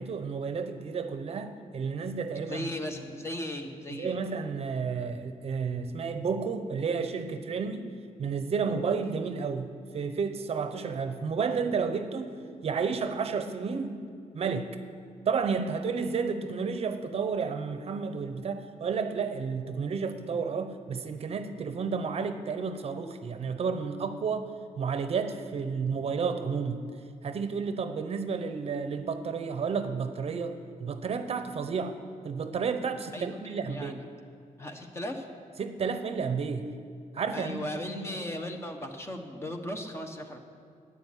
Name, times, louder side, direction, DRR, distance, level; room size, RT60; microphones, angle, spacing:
voice 1, 0.0-2.7 3.9-7.9 8.2-12.3 12.6-14.0 14.3-14.8 15.3-24.5 24.8-26.8 27.2-32.0 32.2-34.0 35.6-36.7 37.1-38.2, right 5 dB, 45° right, 9 dB, 0.8 m, -31 dB
voice 2, 2.4-4.2 33.1-34.1 34.6-35.3 37.3-40.4, left 1 dB, 20° left, 4 dB, 1.2 m, -37 dB
12.0 x 8.5 x 10.0 m, 2.4 s
wide cardioid pair, 150°, 14 cm